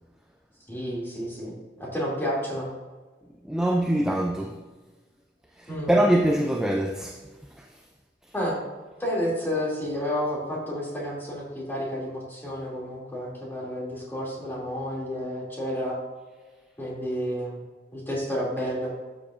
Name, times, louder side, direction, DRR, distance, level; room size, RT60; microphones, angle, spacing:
voice 1, 0.7-2.7 5.7-5.9 8.3-8.6 9.0-16.0 16.8-17.6 17.9-18.9, equal, 15° left, 2.5 m, -30 dB
voice 2, 3.4-4.6 5.6-7.2 7.6-7.8, right 1 dB, 5° right, 0.5 m, -24 dB
12.0 x 7.0 x 2.5 m
head